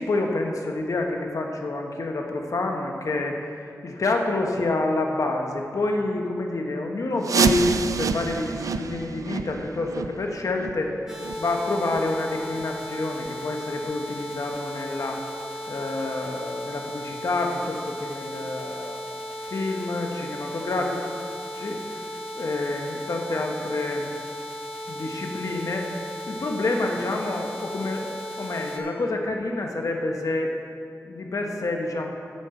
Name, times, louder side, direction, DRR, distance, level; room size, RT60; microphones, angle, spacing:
voice 1, 0.0-7.7 8.0-11.0 11.4-15.2 15.7-19.0 19.4-21.1 21.5-24.1 24.9-25.9 26.3-30.5 31.0-32.1, left 2 dB, 65° left, 2 dB, 1.3 m, -28 dB
sound 1, 7.2-12.8 13.1-13.3 13.8-13.9 14.5-14.6 15.2-15.3, right 5 dB, 70° right, 0.4 m, -28 dB
sound 2, 11.1-28.8, equal, 10° right, 1.9 m, -36 dB
9.7 x 5.5 x 7.9 m, 2.4 s
cardioid pair, 55°, 6 cm